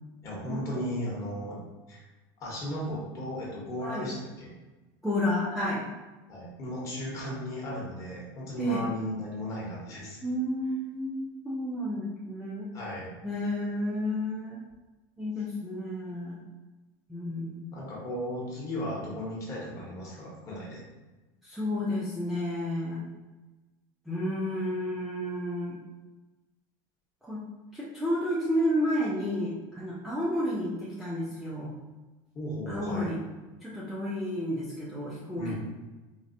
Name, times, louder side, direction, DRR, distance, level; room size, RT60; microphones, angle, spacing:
voice 1, 0.2-1.6 1.9-2.0 2.4-4.5 6.3-10.2 12.7-13.1 17.7-20.8 32.3-33.1 35.4-35.5, equal, 30° left, -5 dB, 1.0 m, -35 dB
voice 2, 3.8-4.1 5.0-5.8 8.6-8.9 10.2-12.7 13.2-14.6 15.2-16.4 17.1-17.7 21.4-23.1 24.1-25.8 27.2-27.4 27.7-31.7 32.7-33.2 33.6-35.5, left 1 dB, ahead, -8 dB, 0.3 m, -31 dB
3.9 x 2.1 x 2.6 m, 1.2 s
supercardioid pair, 165°, 11 cm